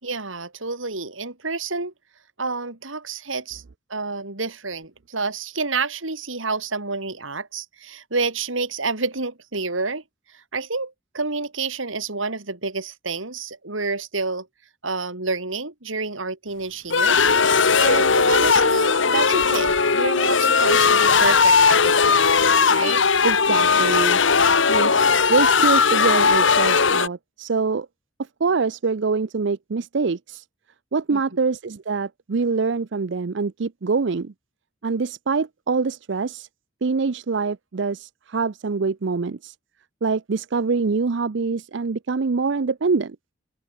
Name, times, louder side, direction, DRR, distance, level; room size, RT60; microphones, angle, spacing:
voice 1, 0.0-1.9 2.4-3.6 3.9-10.0 10.5-14.5 14.8-22.2 22.7-23.1 31.1-31.2, right 3 dB, 80° right, 3.8 m, -29 dB
sound 1, 16.9-27.1, left 5 dB, 70° left, 1.6 m, -18 dB
voice 2, 23.2-24.2 24.7-24.9 25.3-27.9 28.4-30.4 30.9-34.3 34.8-36.5 36.8-39.5 40.0-43.2, right 4 dB, 60° right, 0.5 m, -24 dB
open air
head